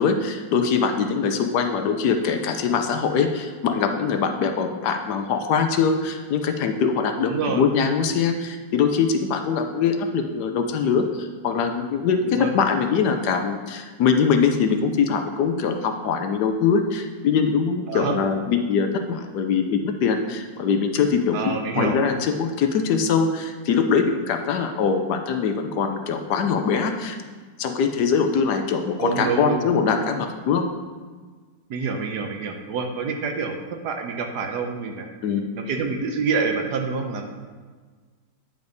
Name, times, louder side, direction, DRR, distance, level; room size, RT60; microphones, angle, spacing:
voice 1, 0.0-21.4 21.7-27.2 27.6-30.6 35.2-35.4, left 6 dB, 70° left, 6 dB, 1.2 m, -22 dB
voice 2, 7.2-7.7 12.3-12.5 17.9-18.2 21.3-22.0 29.0-29.6 31.7-35.1 35.7-37.3, right 5 dB, 70° right, 4 dB, 1.3 m, -27 dB
9.4 x 5.1 x 4.0 m, 1.4 s
omnidirectional pair, 1.9 m